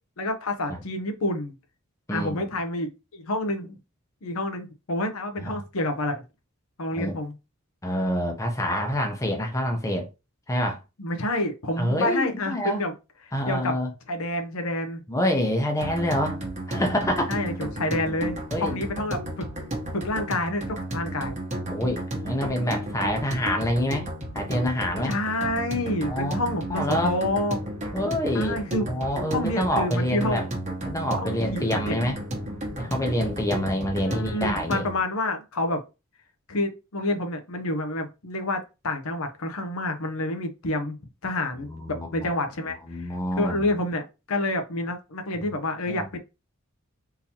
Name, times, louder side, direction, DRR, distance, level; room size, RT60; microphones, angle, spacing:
voice 1, 0.2-1.5 2.1-3.8 4.2-6.2 6.8-7.3 11.0-12.9 13.5-13.8 14.1-15.0 17.3-19.5 19.9-21.4 25.0-27.6 28.3-28.9 29.3-30.5 31.2-32.0 34.1-35.8 36.5-41.0 41.2-46.2, left 1 dB, 80° left, 0.7 m, -28 dB
voice 2, 2.1-2.4 5.4-5.6 6.9-7.1 7.8-10.1 10.5-10.8 11.8-12.8 13.3-13.9 15.1-16.4 16.7-17.4 18.5-18.8 21.7-24.1 24.3-25.1 26.1-27.2 27.9-28.5 28.9-30.5 30.8-32.2 32.8-34.8 41.6-42.3 42.9-43.7 45.5-45.6 45.9-46.2, equal, 15° left, 0.7 m, -27 dB
sound 1, 15.8-35.0, right 1 dB, 35° right, 1.0 m, -33 dB
3.8 x 2.8 x 2.8 m
head